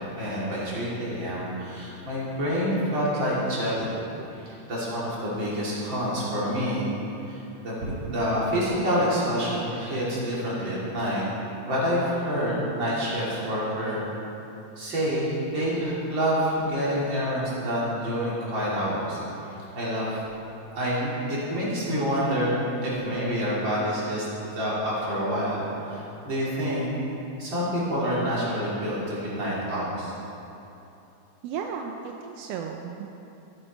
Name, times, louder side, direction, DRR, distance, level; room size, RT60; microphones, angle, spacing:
voice 1, 0.2-3.9 4.3-6.9 7.2-11.2 11.7-14.0 14.8-20.2 20.7-26.9 27.4-30.1, equal, 40° right, -7 dB, 3.7 m, -27 dB
voice 2, 31.4-33.1, right 6 dB, 75° right, 3 dB, 1.5 m, -34 dB
13.0 x 10.0 x 5.4 m, 2.9 s
omnidirectional pair, 3.4 m